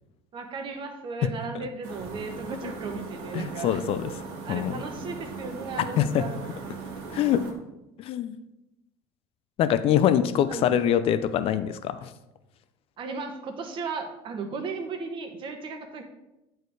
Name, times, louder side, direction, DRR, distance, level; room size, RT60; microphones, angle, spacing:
voice 1, 0.3-3.8 4.4-6.4 7.1-7.2 10.5-10.8 13.0-16.0, right 4 dB, 45° right, 4 dB, 1.3 m, -36 dB
sound 1, 1.8-7.5, right 4 dB, 75° right, 1.6 m, -39 dB
voice 2, 3.3-4.1 4.5-4.8 6.0-6.2 7.1-7.5 8.0-8.4 9.6-12.1, left 10 dB, 50° left, 12 dB, 0.6 m, -24 dB
8.1 x 4.6 x 4.8 m, 0.94 s
supercardioid pair, 100°, 12 cm